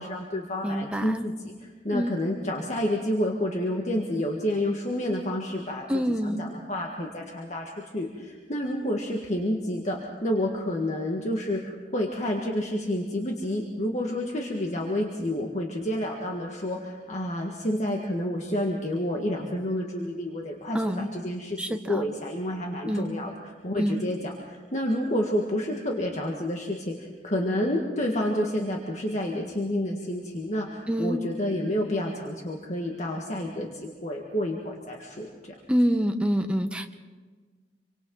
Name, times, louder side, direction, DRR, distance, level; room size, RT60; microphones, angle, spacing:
voice 1, 0.0-35.3, left 1 dB, 40° left, 0 dB, 1.8 m, -29 dB
voice 2, 0.6-1.3 1.9-2.1 5.9-6.4 20.7-21.1 21.6-22.0 22.9-23.1 23.8-24.0 30.9-31.2 35.7-36.9, equal, 5° right, 5 dB, 1.0 m, -26 dB
28.0 x 24.5 x 4.0 m, 1.4 s
head